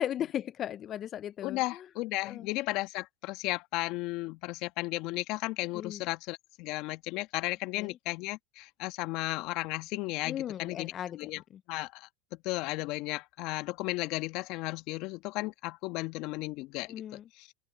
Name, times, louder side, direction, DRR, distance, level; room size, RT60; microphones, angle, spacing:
voice 1, 0.0-1.6 2.2-2.5 5.7-6.0 7.8-7.9 10.3-11.4 16.9-17.2, left 10 dB, 35° left, 0.5 m, -36 dB
voice 2, 1.4-11.4 11.7-12.1 12.4-17.5, left 21 dB, 55° left, 1.5 m, -34 dB
open air
hypercardioid pair, 100°, 0 cm